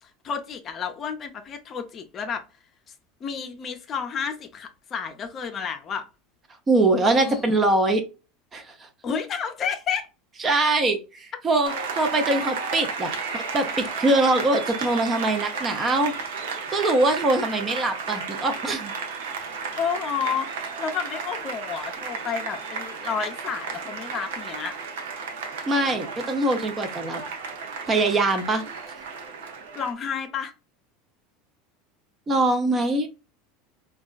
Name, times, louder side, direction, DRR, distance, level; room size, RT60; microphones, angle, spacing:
voice 1, 0.0-2.4 3.2-6.0 7.1-7.4 9.0-10.1 19.8-24.7 29.7-30.5, left 7 dB, 35° left, 0.5 m, -31 dB
voice 2, 6.7-8.0 8.5-8.9 10.4-16.1 16.7-18.9 25.7-27.2 27.9-28.6 32.3-33.1, right 2 dB, 25° right, 0.6 m, -23 dB
Applause, 11.6-29.9, right 5 dB, 85° right, 0.7 m, -33 dB
3.5 x 2.3 x 2.4 m
supercardioid pair, 110°, 0 cm